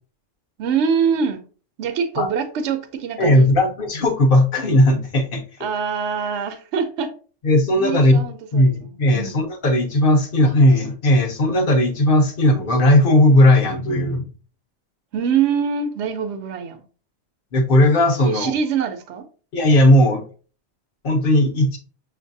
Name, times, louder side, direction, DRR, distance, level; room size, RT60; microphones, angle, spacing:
voice 1, 0.6-1.4 1.8-3.5 5.6-7.1 7.7-9.4 15.1-16.8 18.2-19.3, right 6 dB, 65° right, 0.9 m, -24 dB
voice 2, 3.2-5.4 7.4-8.2 8.5-14.3 17.5-18.5 19.5-20.2 21.0-21.8, left 1 dB, 50° left, 0.9 m, -16 dB
6.4 x 2.6 x 2.6 m
omnidirectional pair, 1.3 m